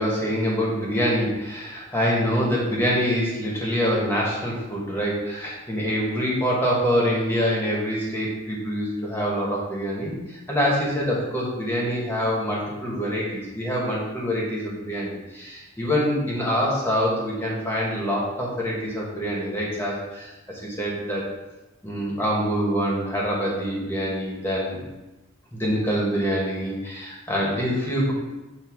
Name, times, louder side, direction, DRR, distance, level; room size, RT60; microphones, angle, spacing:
voice 1, 0.0-20.3 20.6-21.2 21.8-24.8 25.5-28.1, equal, 10° left, -4 dB, 1.7 m, -25 dB
8.2 x 3.2 x 4.7 m, 1.0 s
head